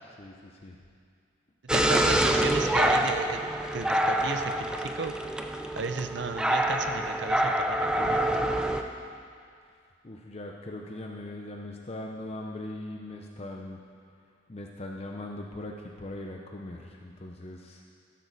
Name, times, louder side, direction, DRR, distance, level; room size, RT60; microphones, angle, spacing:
voice 1, 0.2-0.8 10.0-13.8 14.5-17.8, left 1 dB, 35° left, 1 dB, 0.7 m, -40 dB
sound 1, 1.7-8.8, right 1 dB, 5° right, 0.5 m, -26 dB
voice 2, 1.7-5.1 5.8-8.5, right 4 dB, 65° right, 8 dB, 0.7 m, -34 dB
14.0 x 12.0 x 4.1 m, 2.3 s
head